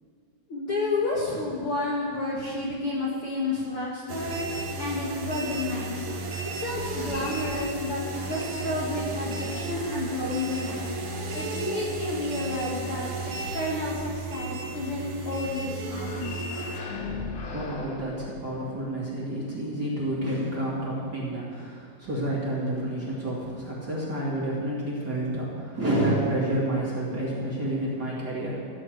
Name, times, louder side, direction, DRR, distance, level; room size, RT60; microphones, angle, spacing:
voice 1, 0.5-6.1 6.4-11.0 11.3-16.7, left 2 dB, 50° left, -5 dB, 1.9 m, -31 dB
sound 1, 4.1-16.8, right 3 dB, 60° right, 1.5 m, -34 dB
sound 2, 6.7-8.7 9.3-11.7 15.8-19.0, left 4 dB, 75° left, 1.0 m, -40 dB
voice 2, 17.5-28.6, right 1 dB, 30° right, -6 dB, 2.4 m, -29 dB
15.0 x 8.5 x 7.8 m, 2.3 s
omnidirectional pair, 4.3 m